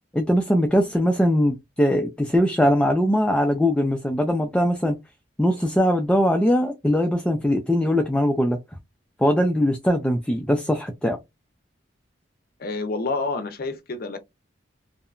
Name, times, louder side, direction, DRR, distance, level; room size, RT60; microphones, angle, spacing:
voice 1, 0.1-5.0 5.4-8.6 9.2-11.2, equal, 5° left, 0.3 m, -21 dB
voice 2, 12.6-14.2, left 3 dB, 55° left, 0.6 m, -28 dB
2.8 x 2.1 x 2.4 m
head